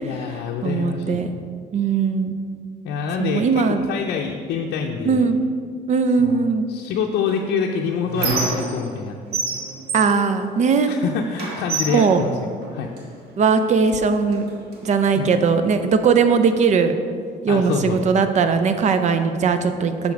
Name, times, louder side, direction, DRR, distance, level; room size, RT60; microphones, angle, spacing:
voice 1, 0.0-1.3 2.8-5.3 6.2-9.2 10.9-12.3 12.7-12.9 15.2-15.3 17.5-18.1, left 6 dB, 75° left, 0 dB, 0.6 m, -26 dB
voice 2, 0.6-1.3 1.7-2.3 3.2-3.8 5.0-5.4 5.9-6.7 9.9-10.9 11.9-12.2 13.4-14.4 14.8-16.9 17.4-20.1, right 5 dB, 45° right, 9 dB, 0.6 m, -19 dB
Squeak, 7.3-9.0 9.3-11.0 11.4-13.1 13.8-14.0 14.3-15.3, right 3 dB, 75° right, 1.4 m, -28 dB
7.0 x 5.2 x 4.6 m, 2.1 s
cardioid pair, 110°, 17 cm